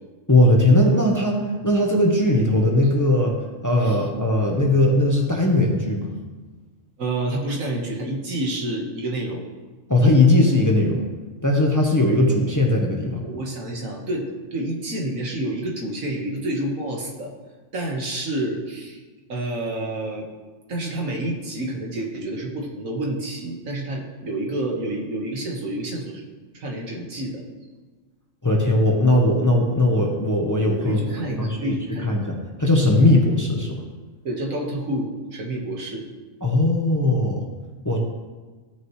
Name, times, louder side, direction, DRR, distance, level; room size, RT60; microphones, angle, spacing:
voice 1, 0.3-1.4 1.6-3.3 3.6-6.1 9.9-11.0 11.4-13.2 28.4-31.0 31.4-31.7 32.0-33.8 36.4-37.4 37.8-38.0, left 1 dB, 15° left, 0 dB, 1.0 m, -19 dB
voice 2, 7.0-9.5 13.2-17.3 17.7-19.0 19.3-20.3 20.7-26.2 26.5-27.4 30.8-32.1 34.2-36.1, right 1 dB, 75° right, -1 dB, 1.9 m, -28 dB
14.5 x 6.1 x 3.2 m, 1.3 s
omnidirectional pair, 1.4 m